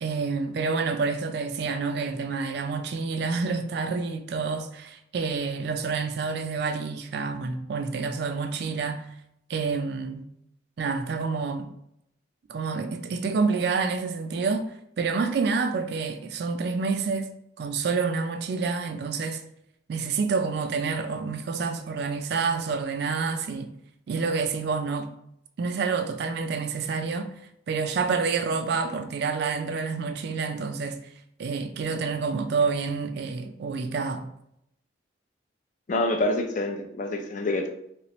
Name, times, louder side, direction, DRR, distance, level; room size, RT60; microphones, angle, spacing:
voice 1, 0.0-9.0 9.5-10.3 10.8-11.7 12.5-14.7 15.0-17.3 17.6-19.4 19.9-23.7 24.1-25.1 25.6-27.3 27.7-31.0 31.4-34.3, right 4 dB, 55° right, 0.3 m, -28 dB
voice 2, 35.9-37.7, left 2 dB, 40° left, 0.4 m, -26 dB
3.1 x 3.0 x 3.0 m
head